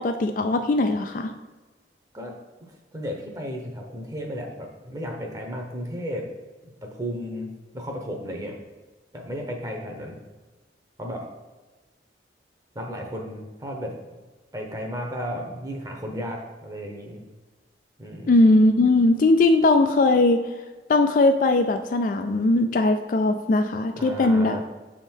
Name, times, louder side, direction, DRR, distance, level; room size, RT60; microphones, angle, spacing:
voice 1, 0.0-1.3 18.3-20.4 20.9-24.6, left 2 dB, 50° left, 7 dB, 0.3 m, -19 dB
voice 2, 2.9-6.2 6.8-8.6 9.1-10.2 11.0-11.3 12.7-13.9 14.5-17.2 18.0-18.3 24.0-24.6, equal, 20° right, 1 dB, 0.8 m, -34 dB
6.9 x 3.6 x 4.4 m, 1.2 s
head